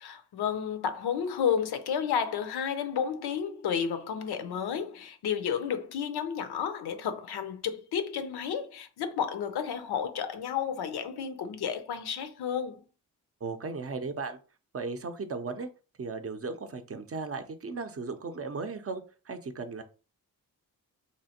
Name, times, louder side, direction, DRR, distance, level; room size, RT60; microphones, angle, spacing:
voice 1, 0.0-12.8, left 7 dB, 85° left, 0.5 m, -31 dB
voice 2, 13.4-14.4 14.7-15.7 16.0-19.8, right 4 dB, 40° right, 0.5 m, -36 dB
3.0 x 2.5 x 2.8 m
cardioid pair, 55°, 37 cm